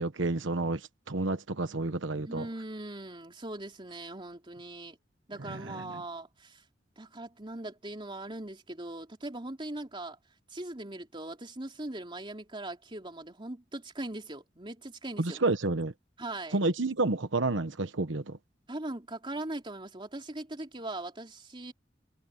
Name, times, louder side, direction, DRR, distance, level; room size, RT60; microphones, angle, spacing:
voice 1, 0.0-2.5 5.4-6.0 15.2-15.9 16.5-18.4, right 2 dB, 85° right, 1.1 m, -30 dB
voice 2, 2.2-5.0 5.3-6.6 7.0-10.2 10.5-15.4 16.2-16.6 18.7-21.7, right 2 dB, 25° right, 3.2 m, -40 dB
head